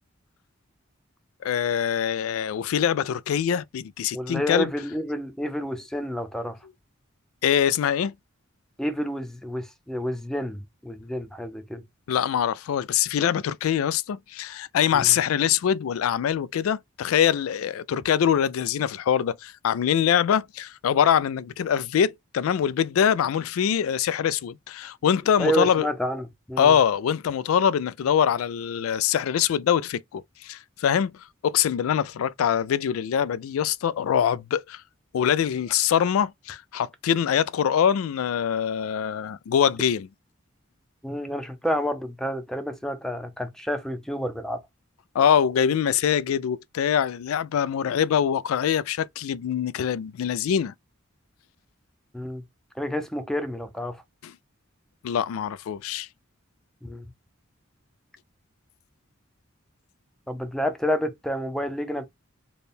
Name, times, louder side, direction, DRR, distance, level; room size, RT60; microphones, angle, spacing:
voice 1, 1.4-4.7 7.4-8.1 12.1-25.9 26.6-31.1 31.4-34.8 35.1-40.1 45.1-50.7 54.2-54.3 55.0-56.1, left 8 dB, 85° left, 0.3 m, -24 dB
voice 2, 4.1-6.6 8.8-11.8 14.9-15.1 25.4-26.7 41.0-44.6 52.1-52.4 52.8-54.0 56.8-57.1 60.3-62.1, equal, ahead, 0.6 m, -29 dB
3.4 x 2.2 x 4.1 m
head